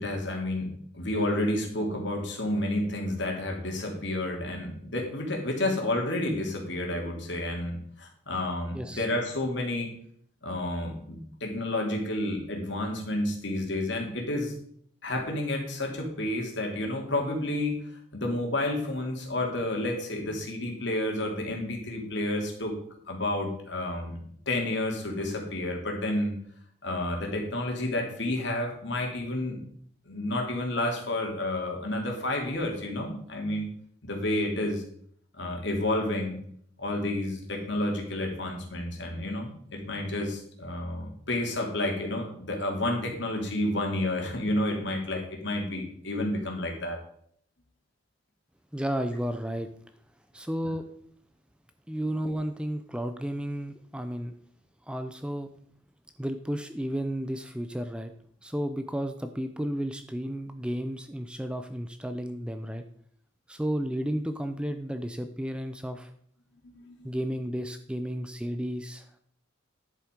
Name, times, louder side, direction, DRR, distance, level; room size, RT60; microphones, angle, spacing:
voice 1, 0.0-9.9 10.4-14.5 15.0-17.8 18.1-22.8 23.1-26.3 26.8-29.6 30.0-33.7 34.0-34.8 35.3-36.4 36.8-47.0 66.6-67.1, left 1 dB, 60° left, 2 dB, 2.7 m, -30 dB
voice 2, 8.7-9.0 48.7-49.7 50.3-50.8 51.9-54.3 54.9-55.5 56.2-58.1 58.4-62.8 63.5-66.1 67.0-69.2, equal, 5° right, 8 dB, 0.5 m, -32 dB
10.5 x 7.6 x 5.2 m, 0.63 s
head